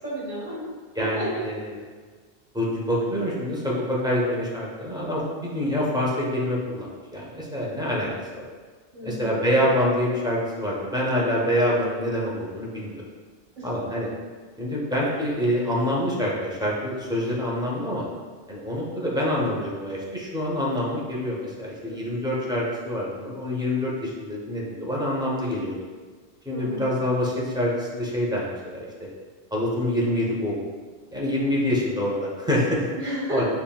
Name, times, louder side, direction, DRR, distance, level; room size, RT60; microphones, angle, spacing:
voice 1, 0.0-0.6 1.0-1.4 8.9-9.5 13.6-13.7 21.8-22.0 26.5-27.1 32.9-33.5, right 1 dB, 50° right, -8 dB, 1.5 m, -32 dB
voice 2, 1.0-1.6 2.5-6.9 7.1-8.1 8.3-8.5 9.0-13.0 13.6-14.1 14.6-18.0 18.5-25.8 26.5-29.1 29.5-30.6 31.1-32.9 33.3-33.5, left 1 dB, 5° right, -5 dB, 0.3 m, -26 dB
5.4 x 2.4 x 2.3 m, 1.4 s
omnidirectional pair, 1.1 m